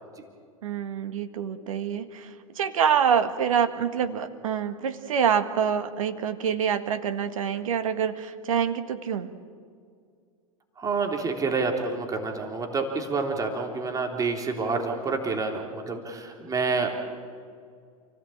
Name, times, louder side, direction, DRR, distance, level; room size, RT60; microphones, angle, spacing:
voice 1, 0.6-9.3, right 8 dB, 65° right, 10 dB, 1.7 m, -26 dB
voice 2, 10.8-16.9, right 4 dB, 20° right, 2 dB, 3.5 m, -28 dB
29.0 x 17.0 x 8.7 m, 2.2 s
figure-of-eight pair, 90°, 18 cm